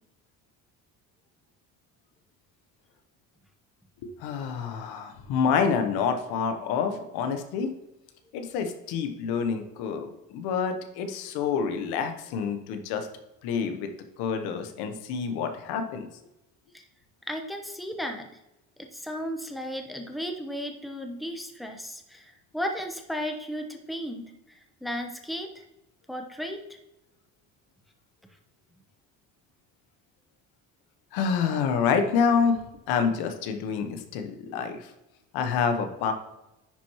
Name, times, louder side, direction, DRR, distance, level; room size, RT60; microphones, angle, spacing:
voice 1, 4.0-7.7 8.3-13.1 13.4-13.9 14.2-16.1 31.1-34.9 35.3-36.1, left 6 dB, 90° left, 7 dB, 1.0 m, -27 dB
voice 2, 17.3-18.3 18.9-24.3 24.5-25.6 26.1-26.6, equal, ahead, 3 dB, 0.9 m, -34 dB
10.5 x 4.3 x 3.0 m, 0.93 s
cardioid pair, 105°, 37 cm